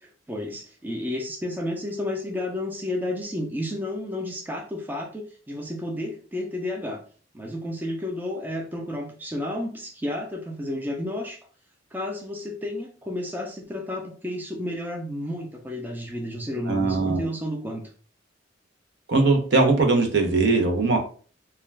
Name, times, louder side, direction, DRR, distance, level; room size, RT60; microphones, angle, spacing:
voice 1, 0.0-7.0 7.3-11.4 11.9-17.9, left 1 dB, 10° right, 1 dB, 0.4 m, -31 dB
voice 2, 16.7-17.2 19.1-21.0, right 3 dB, 60° right, 4 dB, 0.6 m, -20 dB
2.2 x 2.2 x 3.2 m, 0.41 s
head